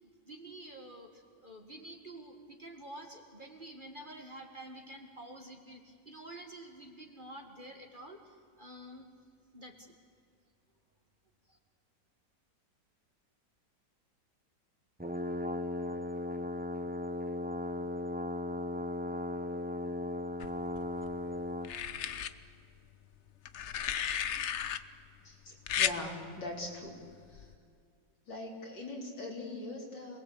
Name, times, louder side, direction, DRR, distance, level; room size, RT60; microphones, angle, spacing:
voice 1, 0.0-9.1 9.5-9.9 11.5-11.6, right 1 dB, 25° right, 3 dB, 1.9 m, -49 dB
sound 1, 15.0-21.8, left 1 dB, 10° right, 0.4 m, -36 dB
sound 2, 20.4-21.1 21.6-22.3 23.5-24.8 25.7-26.0 27.3-27.6, left 9 dB, 55° left, 0.8 m, -34 dB
voice 2, 25.2-27.0 27.3-27.5 28.3-30.2, left 2 dB, 75° left, -1 dB, 4.4 m, -41 dB
27.0 x 20.0 x 8.4 m, 2.2 s
omnidirectional pair, 2.0 m